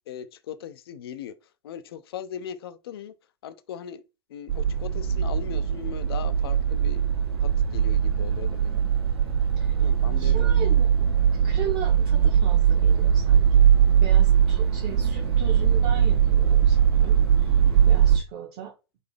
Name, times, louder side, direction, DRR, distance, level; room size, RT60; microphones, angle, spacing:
voice 1, 0.1-1.3 1.6-3.1 3.4-4.0 4.3-7.0 7.4-8.7 9.8-10.5, left 9 dB, 60° left, 0.4 m, -38 dB
sound 1, 4.5-18.2, right 8 dB, 70° right, 1.4 m, -21 dB
voice 2, 9.6-9.9 10.2-17.5 17.8-18.7, right 9 dB, 45° right, 1.1 m, -38 dB
4.0 x 2.7 x 3.3 m
figure-of-eight pair, 90°, 14 cm